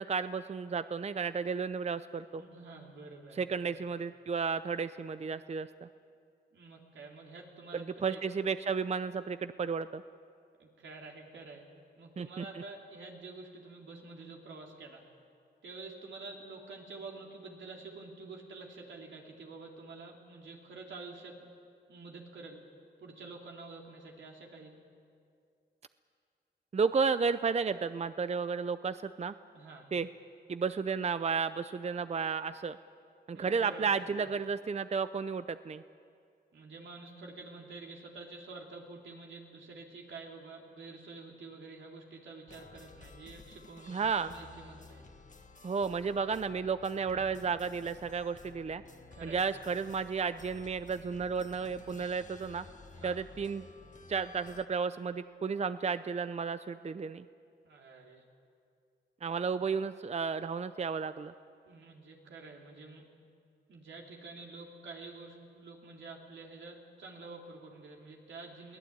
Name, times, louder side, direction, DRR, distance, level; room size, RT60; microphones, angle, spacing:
voice 1, 0.0-2.4 3.4-5.9 7.7-10.0 12.2-12.5 26.7-29.3 29.9-30.1 30.5-32.8 33.3-35.8 43.9-44.3 45.6-48.8 49.2-52.6 53.0-53.6 54.1-57.3 59.2-61.3, right 5 dB, 35° right, 12 dB, 0.6 m, -33 dB
voice 2, 2.4-3.7 6.5-8.2 10.6-11.6 12.0-15.0 15.6-21.4 21.9-22.6 23.0-24.7 29.5-29.9 33.3-34.3 36.5-45.1 47.1-47.3 49.1-49.6 52.9-53.2 57.6-58.2 61.7-63.0 63.7-68.8, right 3 dB, 85° right, 0 dB, 3.3 m, -48 dB
sound 1, 42.5-54.7, left 4 dB, 40° left, 1.6 m, -54 dB
22.5 x 17.0 x 8.8 m, 2.3 s
cardioid pair, 65°, 19 cm